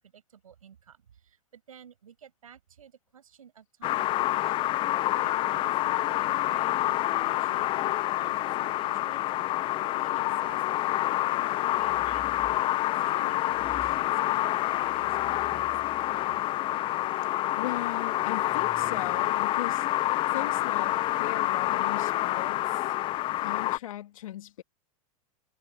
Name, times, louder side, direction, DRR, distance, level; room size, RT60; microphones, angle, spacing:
voice 1, 0.0-4.7 5.1-10.9 11.8-12.5 13.0-16.4, right 8 dB, 90° right, 7.7 m, -53 dB
sound 1, 3.8-23.8, left 15 dB, 30° left, 0.4 m, -27 dB
sound 2, 11.7-12.6 13.5-19.5, left 3 dB, 10° left, 2.6 m, -51 dB
voice 2, 17.6-19.9 20.3-22.8 23.4-24.6, left 13 dB, 75° left, 2.1 m, -38 dB
hypercardioid pair, 115°, 17 cm